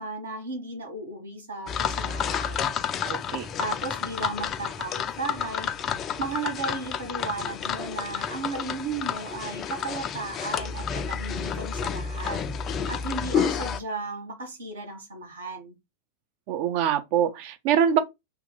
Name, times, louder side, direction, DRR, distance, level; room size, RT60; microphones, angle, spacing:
voice 1, 0.0-2.7 3.6-5.7 6.2-15.8, right 3 dB, 70° right, 0.9 m, -35 dB
sound 1, 1.7-13.8, left 7 dB, 30° left, 0.3 m, -30 dB
voice 2, 3.0-3.5 16.5-18.0, right 9 dB, 45° right, 0.5 m, -24 dB
2.8 x 2.2 x 3.6 m
figure-of-eight pair, 90°, 0 cm